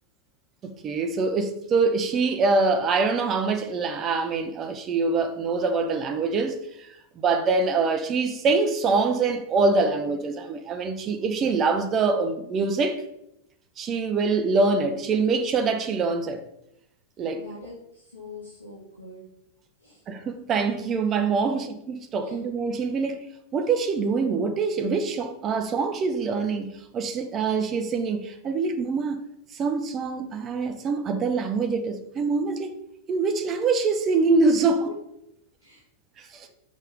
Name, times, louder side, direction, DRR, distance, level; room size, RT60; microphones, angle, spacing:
voice 1, 0.8-6.9 7.2-13.0 13.8-16.4 17.2-17.4 20.1-23.2 23.5-29.2 29.5-32.7 33.1-34.9 36.3-36.5, right 4 dB, 30° right, 0.7 m, -24 dB
voice 2, 17.3-19.2 19.8-20.0 22.2-22.4 34.8-34.9 35.6-35.8 36.4-36.5, left 3 dB, 80° left, 2.2 m, -43 dB
6.3 x 5.6 x 3.6 m
figure-of-eight pair, 90°, 0 cm